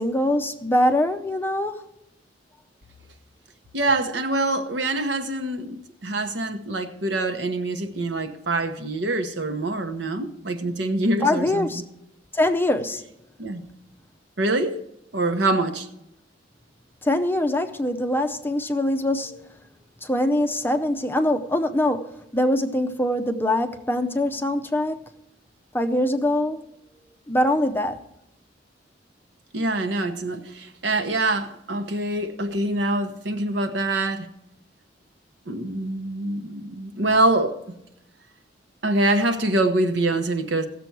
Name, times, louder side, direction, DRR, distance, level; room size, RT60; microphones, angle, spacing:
voice 1, 0.0-1.8 11.2-11.8 12.3-13.0 17.0-19.5 20.0-25.0 25.7-26.6 27.3-28.0, left 1 dB, 10° left, 0.5 m, -23 dB
voice 2, 3.7-5.8 6.0-11.8 13.4-13.6 14.4-14.8 15.1-15.9 29.5-34.3 35.5-37.5 38.8-40.7, right 2 dB, 70° right, 1.0 m, -25 dB
16.0 x 6.9 x 4.6 m
head